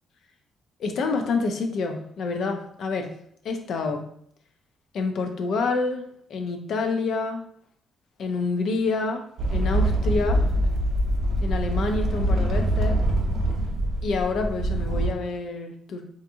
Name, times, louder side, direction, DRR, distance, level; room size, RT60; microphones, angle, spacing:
voice 1, 0.8-3.1 3.4-4.1 4.9-7.5 8.2-9.2 9.5-10.4 11.4-13.0 14.0-16.0, left 3 dB, 70° left, 5 dB, 0.4 m, -27 dB
sound 1, 9.4-15.1, right 1 dB, 70° right, 0.4 m, -24 dB
2.4 x 2.4 x 2.7 m, 0.66 s
cardioid pair, 90°, 0 cm